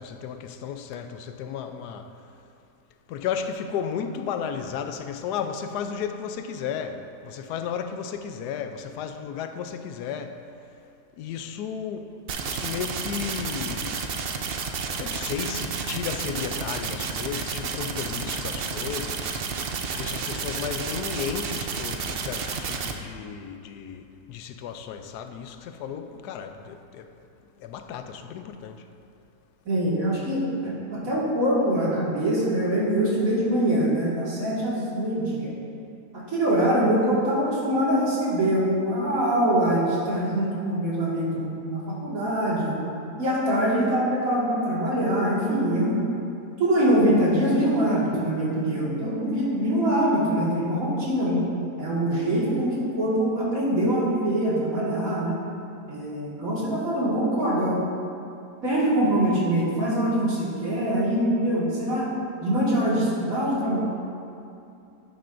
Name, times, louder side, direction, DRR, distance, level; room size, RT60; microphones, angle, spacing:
voice 1, 0.0-2.1 3.1-10.4 11.2-12.2 12.4-14.0 15.0-19.5 20.0-27.1 27.6-28.8, left 7 dB, 90° left, 1.1 m, -34 dB
sound 1, 12.3-22.9, right 5 dB, 75° right, 0.5 m, -31 dB
voice 2, 29.7-35.5 36.1-42.8 43.2-46.0 46.6-51.4 51.8-55.4 55.9-57.8 58.6-62.1 62.4-63.8, right 1 dB, 60° right, 2.4 m, -24 dB
9.8 x 9.0 x 2.6 m
omnidirectional pair, 1.7 m